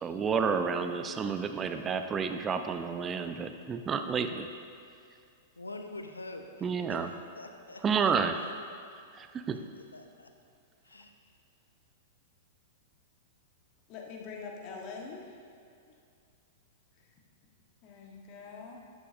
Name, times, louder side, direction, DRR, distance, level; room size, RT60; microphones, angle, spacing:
voice 1, 0.0-4.5 6.6-7.1 7.8-8.3 9.1-9.6, right 6 dB, 20° right, 8 dB, 0.5 m, -30 dB
voice 2, 5.6-7.0 7.3-8.1 9.5-10.3 10.8-11.1, left 2 dB, 85° left, 6 dB, 0.7 m, -45 dB
voice 3, 13.9-15.4 17.0-17.1 17.8-18.8, left 4 dB, 40° left, 0 dB, 1.3 m, -44 dB
11.5 x 8.4 x 2.6 m, 2.4 s
figure-of-eight pair, 100°, 0 cm